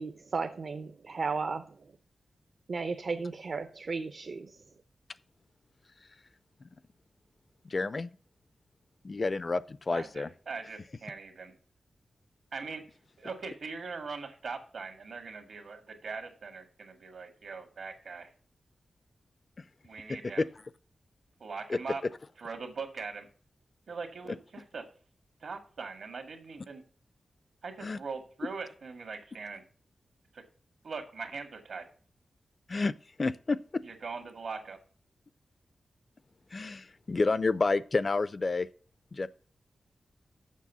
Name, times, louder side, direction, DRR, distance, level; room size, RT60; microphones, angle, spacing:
voice 1, 0.0-1.9 2.7-4.6, right 4 dB, 55° right, 0.6 m, -35 dB
voice 2, 7.6-8.2 9.0-10.3 19.6-19.7 20.1-20.4 21.7-21.8 27.8-28.0 32.7-33.8 36.5-38.7 39.1-39.3, left 3 dB, 35° left, 0.4 m, -30 dB
voice 3, 9.9-11.5 12.5-12.8 13.2-18.3 19.8-20.4 21.4-22.0 22.4-23.3 23.9-24.9 25.4-26.8 27.6-29.6 30.3-30.4 30.8-31.9 33.8-34.8, right 4 dB, 70° right, 1.7 m, -41 dB
7.4 x 6.1 x 6.9 m
wide cardioid pair, 130°, 0 cm